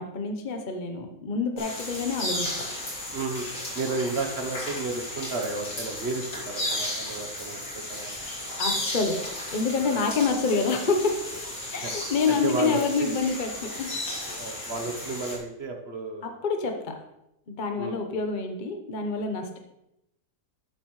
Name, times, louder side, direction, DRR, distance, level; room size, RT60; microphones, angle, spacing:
voice 1, 0.0-2.5 8.6-9.2 9.5-11.2 11.7-13.9 16.2-16.9 17.5-19.6, left 4 dB, 35° left, 4 dB, 0.9 m, -27 dB
sound 1, 1.6-15.4, left 1 dB, 60° left, 3.5 m, -34 dB
voice 2, 3.1-3.4 3.7-8.1 11.7-11.9 12.3-13.1 14.4-16.3 17.8-18.0, right 3 dB, 45° right, 4 dB, 1.1 m, -32 dB
12.5 x 7.8 x 3.1 m, 0.85 s
omnidirectional pair, 1.6 m